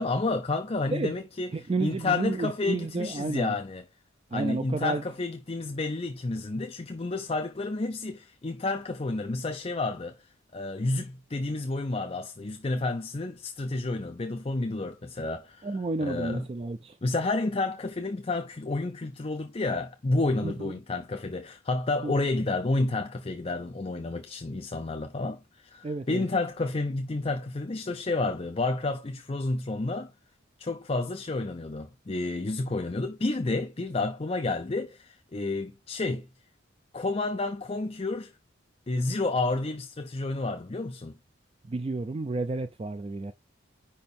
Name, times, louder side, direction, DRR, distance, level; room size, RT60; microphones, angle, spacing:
voice 1, 0.0-3.8 4.3-15.7 16.0-16.5 17.0-30.1 30.6-36.3 36.9-38.3 38.9-41.1, left 2 dB, 30° left, 0.5 m, -30 dB
voice 2, 1.5-3.6 4.3-5.0 15.6-17.0 20.4-20.7 22.0-22.1 25.8-26.2 41.7-43.3, right 3 dB, 30° right, 0.3 m, -31 dB
5.2 x 4.3 x 5.2 m
head